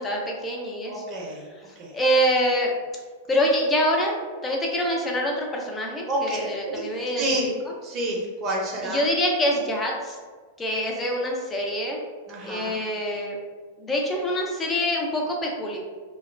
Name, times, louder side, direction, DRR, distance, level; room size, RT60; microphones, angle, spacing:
voice 1, 0.0-1.0 1.9-2.7 3.3-4.1 4.4-7.3 7.6-7.7 8.8-10.2 10.6-12.0 12.4-13.4 13.8-15.8, equal, 15° left, -1 dB, 0.5 m, -25 dB
voice 2, 0.9-1.4 1.8-1.9 6.1-6.4 6.7-6.8 7.2-7.5 7.8-9.0 12.3-12.8, right 1 dB, 25° right, -3 dB, 0.7 m, -28 dB
2.3 x 2.1 x 3.2 m, 1.5 s
figure-of-eight pair, 95°, 0 cm